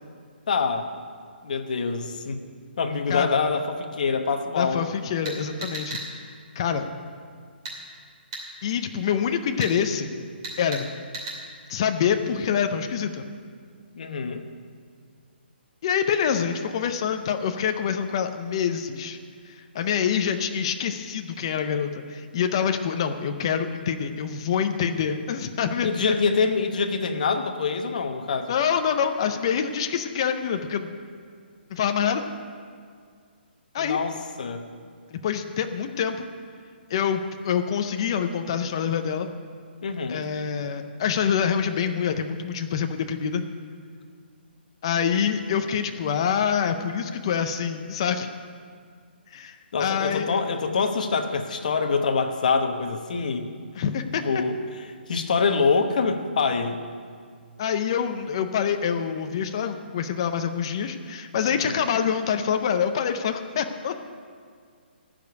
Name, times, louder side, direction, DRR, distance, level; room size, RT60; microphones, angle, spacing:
voice 1, 0.5-0.9 1.4-2.4 2.8-4.8 13.9-14.5 25.8-28.6 33.8-34.6 39.8-40.2 49.7-53.5 54.2-56.8 61.5-61.7, left 5 dB, 45° left, 6 dB, 1.0 m, -25 dB
voice 2, 4.6-6.0 6.6-6.9 8.6-10.1 10.6-10.9 11.7-13.2 15.8-19.2 19.5-25.9 28.5-30.9 31.7-32.2 33.7-34.0 35.1-36.3 36.9-39.3 40.1-43.4 44.8-48.3 49.3-50.3 53.8-54.2 57.6-63.9, left 7 dB, 25° left, 7 dB, 0.5 m, -26 dB
sound 1, 5.2-6.1 7.6-7.8 8.3-8.4 9.6-9.7 10.4-10.8 11.1-11.4, right 2 dB, 25° right, 2.5 m, -34 dB
14.5 x 5.2 x 9.3 m, 2.1 s
hypercardioid pair, 175°, 6 cm